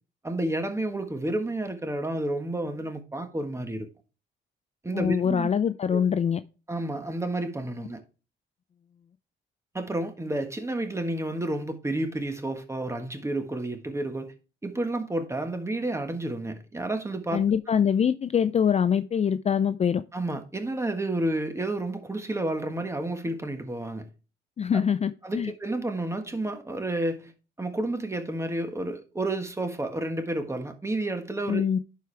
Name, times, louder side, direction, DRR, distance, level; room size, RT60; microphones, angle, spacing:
voice 1, 0.2-3.9 4.8-5.5 5.9-6.0 6.7-8.0 9.7-14.3 14.6-17.4 20.1-24.1 25.2-27.3 27.6-31.6, right 1 dB, 15° right, 1.5 m, -30 dB
voice 2, 4.9-6.4 17.3-20.0 24.6-25.5 31.5-31.8, left 7 dB, 35° left, 0.4 m, -24 dB
11.0 x 4.7 x 3.4 m
cardioid pair, 90°, 20 cm